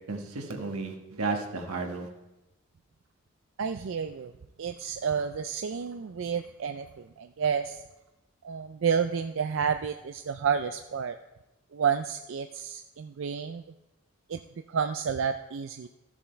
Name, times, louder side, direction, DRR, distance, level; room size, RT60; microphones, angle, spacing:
voice 1, 0.1-2.1, right 3 dB, 85° right, 3 dB, 1.5 m, -33 dB
voice 2, 3.6-4.3 4.6-7.8 8.4-11.1 11.7-13.6 14.3-14.4 14.7-15.9, right 6 dB, 60° right, 8 dB, 0.4 m, -30 dB
13.5 x 7.2 x 4.5 m, 0.97 s
head